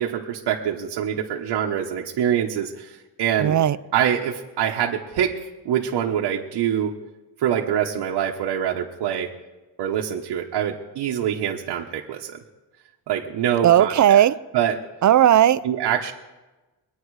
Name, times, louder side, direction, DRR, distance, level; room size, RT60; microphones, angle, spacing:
voice 1, 0.0-3.6 3.9-5.3 5.6-6.9 7.4-9.3 9.8-12.4 13.1-14.2 14.5-14.8 15.6-16.1, right 9 dB, 80° right, 1.3 m, -25 dB
voice 2, 3.4-3.8 13.6-14.4 15.0-15.6, right 11 dB, 45° right, 0.6 m, -16 dB
23.0 x 9.3 x 4.8 m
cardioid pair, 105°, 41 cm